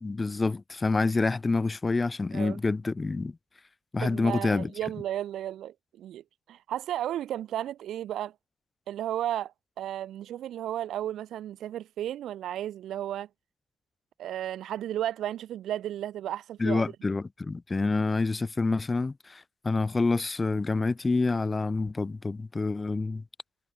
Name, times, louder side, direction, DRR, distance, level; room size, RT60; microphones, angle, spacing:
voice 1, 0.0-3.3 3.9-4.7 16.6-23.2, left 3 dB, 25° left, 1.1 m, -27 dB
voice 2, 4.0-8.3 8.9-13.3 14.2-16.8, right 11 dB, 75° right, 0.7 m, -34 dB
cardioid pair, 90°, 0 cm